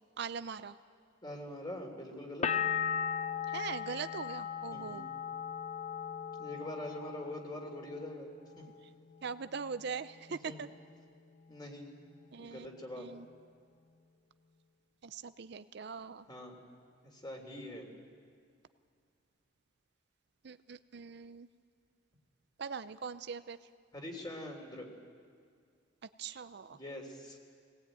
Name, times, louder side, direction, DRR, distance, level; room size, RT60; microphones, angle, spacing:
voice 1, 0.2-0.8 3.5-5.1 9.2-10.7 12.3-12.7 13.0-13.3 15.0-16.3 20.4-21.5 22.6-23.6 26.2-26.8, right 6 dB, 60° right, 13 dB, 0.6 m, -41 dB
voice 2, 1.2-2.5 4.7-5.0 6.4-8.3 8.6-8.7 10.5-10.6 11.5-11.9 12.4-13.1 16.3-16.6 17.0-17.9 23.9-24.9 26.7-27.4, left 1 dB, 20° left, 2 dB, 3.2 m, -44 dB
sound 1, 2.4-8.1 8.4-9.1, left 7 dB, 40° left, 0.6 m, -37 dB
22.5 x 19.0 x 9.2 m, 2.2 s
head